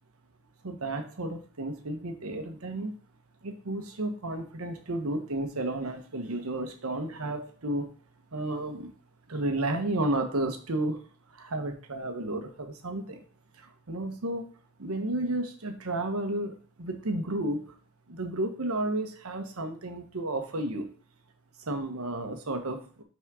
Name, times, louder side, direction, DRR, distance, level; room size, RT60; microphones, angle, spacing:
voice 1, 0.6-3.0 3.4-7.9 8.3-8.9 9.3-11.0 11.3-13.2 13.6-14.4 14.8-17.7 18.1-20.9 21.6-23.0, right 1 dB, 90° right, 6 dB, 1.1 m, -32 dB
5.9 x 4.2 x 4.8 m, 0.42 s
head